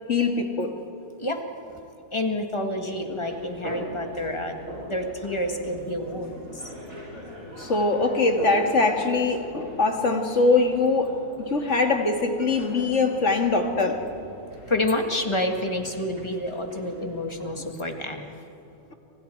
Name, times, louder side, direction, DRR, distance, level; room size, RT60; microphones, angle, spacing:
voice 1, 0.1-0.8 7.6-14.1, left 3 dB, 50° left, 4 dB, 2.2 m, -22 dB
voice 2, 2.1-4.5 4.9-6.4 14.7-18.3, left 1 dB, 20° left, 4 dB, 1.9 m, -28 dB
sound 1, 2.9-17.7, equal, 60° right, 6.7 m, -41 dB
29.5 x 26.5 x 4.6 m, 2.9 s
omnidirectional pair, 1.6 m